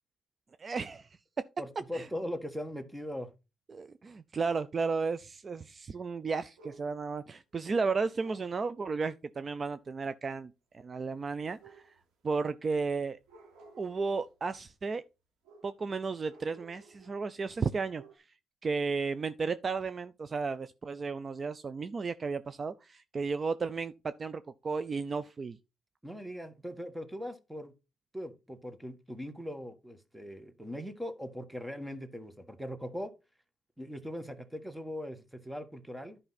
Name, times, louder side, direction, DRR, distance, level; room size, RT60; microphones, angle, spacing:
voice 1, 0.6-1.1 1.9-2.1 3.7-11.9 12.2-13.2 13.8-15.0 15.6-18.2 18.6-25.6, right 4 dB, 40° right, 0.5 m, -34 dB
voice 2, 1.6-3.3 26.0-27.7 28.1-33.1 33.8-36.2, equal, 5° right, 1.5 m, -40 dB
sound 1, 6.6-7.1 8.1-8.6 11.5-12.3 13.2-14.4 15.4-15.9 16.2-17.4 17.7-18.2, right 3 dB, 90° right, 3.3 m, -56 dB
10.5 x 5.5 x 4.1 m
cardioid pair, 90°, 0 cm